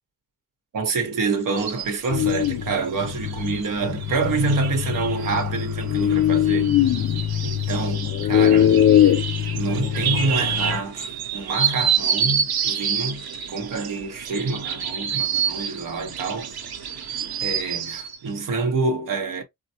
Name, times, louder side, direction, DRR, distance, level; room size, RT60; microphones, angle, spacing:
voice 1, 0.7-6.8 7.4-9.2 9.5-16.5 17.4-19.4, right 3 dB, 60° right, 1.0 m, -27 dB
sound 1, 1.6-18.2, right 7 dB, 85° right, 0.8 m, -29 dB
sound 2, 2.1-10.8, left 11 dB, 50° left, 0.5 m, -22 dB
4.3 x 2.1 x 2.7 m
wide cardioid pair, 175°, 36 cm